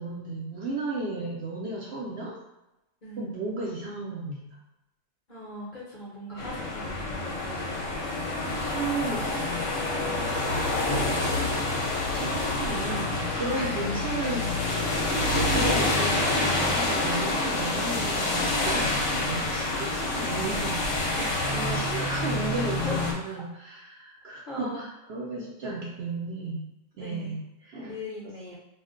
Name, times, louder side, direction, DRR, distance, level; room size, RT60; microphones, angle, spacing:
voice 1, 0.0-2.4 3.2-4.5 8.6-9.5 11.1-11.4 11.8-14.8 15.1-21.2 21.5-26.7 27.0-28.0 28.2-28.3, right 3 dB, 65° right, -3 dB, 0.7 m, -34 dB
voice 2, 5.3-7.8 13.5-14.0 21.2-22.0 22.8-22.9 23.2-23.4 24.2-24.8 26.9-27.4 27.9-28.5, left 1 dB, 45° left, -7 dB, 0.7 m, -40 dB
sound 1, 6.4-23.1, left 2 dB, 70° left, 0.9 m, -27 dB
2.4 x 2.1 x 3.6 m, 0.95 s
omnidirectional pair, 1.4 m